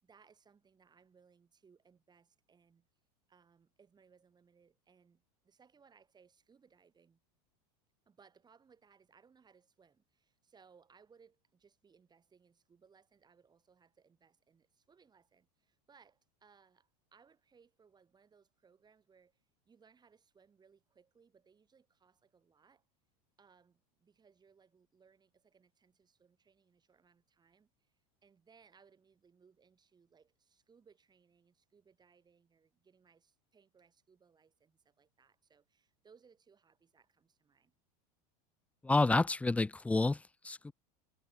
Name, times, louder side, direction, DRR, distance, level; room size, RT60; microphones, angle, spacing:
voice 1, 0.0-2.8 3.3-7.2 8.1-22.8 23.4-37.7, right 6 dB, 20° right, 5.5 m, -66 dB
voice 2, 38.8-40.7, left 3 dB, 5° left, 0.4 m, -29 dB
supercardioid pair, 125°, 20 cm